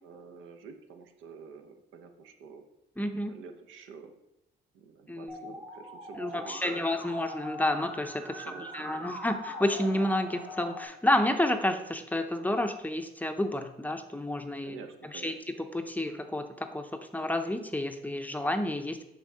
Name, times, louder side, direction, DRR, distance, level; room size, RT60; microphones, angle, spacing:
voice 1, 0.0-2.6 3.3-4.1 4.7-6.8 8.4-9.2 14.6-15.6, right 5 dB, 85° right, 6 dB, 0.7 m, -48 dB
voice 2, 3.0-3.4 5.1-5.5 6.1-14.8 15.0-15.4 15.7-19.0, left 1 dB, 10° left, 6 dB, 0.5 m, -30 dB
Musical instrument, 5.3-10.8, equal, 30° right, 1.5 m, -42 dB
6.0 x 3.5 x 5.4 m, 0.90 s
cardioid pair, 90°, 20 cm